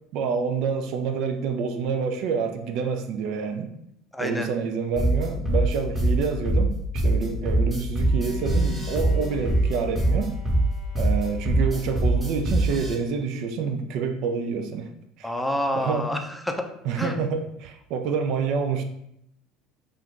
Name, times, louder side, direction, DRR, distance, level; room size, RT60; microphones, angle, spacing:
voice 1, 0.1-3.7 4.2-10.3 11.0-14.9 15.2-15.3 15.8-16.1 16.8-18.8, right 5 dB, 65° right, 6 dB, 0.3 m, -27 dB
voice 2, 4.1-4.5 15.2-16.7 17.0-17.2, left 1 dB, 5° left, 4 dB, 0.4 m, -28 dB
sound 1, 5.0-13.0, right 1 dB, 15° right, 0.9 m, -23 dB
Bowed string instrument, 8.0-13.0, left 2 dB, 55° left, 0.5 m, -45 dB
2.5 x 2.3 x 3.6 m, 0.76 s
hypercardioid pair, 80°, 0 cm